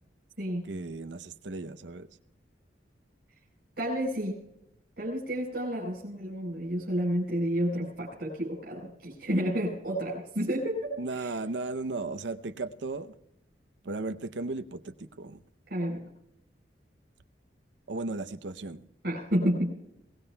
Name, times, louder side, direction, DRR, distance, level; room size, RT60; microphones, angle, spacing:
voice 1, 0.6-2.1 11.0-13.1 13.8-15.4 17.9-18.8, right 3 dB, 80° right, 9 dB, 0.7 m, -35 dB
voice 2, 3.8-4.4 5.0-11.4 15.7-16.1 19.0-19.7, equal, 60° right, -2 dB, 4.2 m, -30 dB
22.0 x 18.0 x 2.3 m, 0.82 s
head